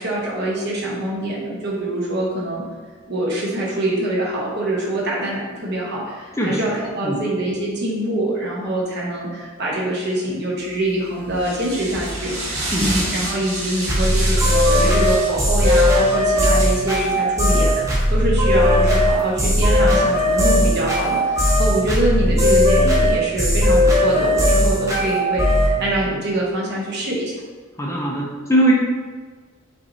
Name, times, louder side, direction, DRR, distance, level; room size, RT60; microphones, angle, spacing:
voice 1, 0.0-2.6 3.1-27.4, right 1 dB, 55° right, -4 dB, 1.1 m, -24 dB
sound 1, 10.7-23.1, right 1 dB, 85° right, 1.4 m, -31 dB
sound 2, 13.9-25.8, left 1 dB, 15° right, 0.9 m, -17 dB
voice 2, 27.8-28.7, right 1 dB, 15° left, -3 dB, 0.5 m, -20 dB
5.5 x 3.1 x 2.7 m, 1.5 s
head